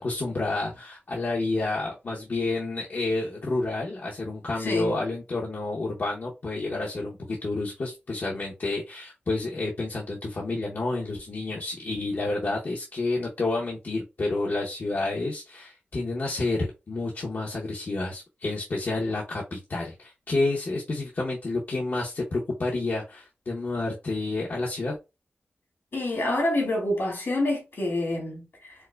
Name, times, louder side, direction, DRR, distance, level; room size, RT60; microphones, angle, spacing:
voice 1, 0.0-25.0, left 2 dB, 60° left, 0.8 m, -29 dB
voice 2, 25.9-28.7, left 1 dB, 75° left, 1.7 m, -27 dB
4.5 x 2.1 x 2.3 m
wide cardioid pair, 65°, 4 cm